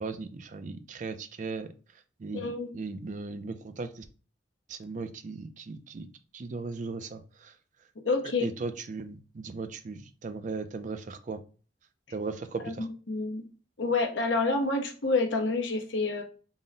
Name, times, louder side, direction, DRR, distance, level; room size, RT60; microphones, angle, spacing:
voice 1, 0.0-1.7 2.2-2.4 2.7-4.1 4.7-6.1 6.3-7.5 8.4-11.4 12.1-12.9, right 4 dB, 45° right, 10 dB, 0.4 m, -37 dB
voice 2, 2.3-2.7 8.0-8.5 12.6-12.7 13.1-13.4 13.8-16.2, left 3 dB, 85° left, 3 dB, 0.8 m, -28 dB
3.9 x 2.1 x 3.7 m, 0.37 s
head